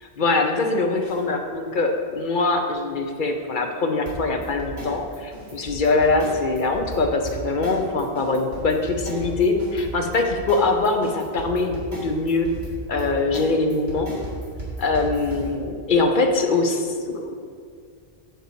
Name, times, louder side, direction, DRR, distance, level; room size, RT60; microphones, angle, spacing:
voice 1, 0.2-12.5 12.9-14.1 14.8-17.4, left 3 dB, 55° left, 4 dB, 0.8 m, -23 dB
sound 1, 1.0-1.2 4.1-15.5, right 2 dB, 70° right, 2.4 m, -35 dB
6.7 x 4.6 x 6.7 m, 2.1 s
omnidirectional pair, 1.1 m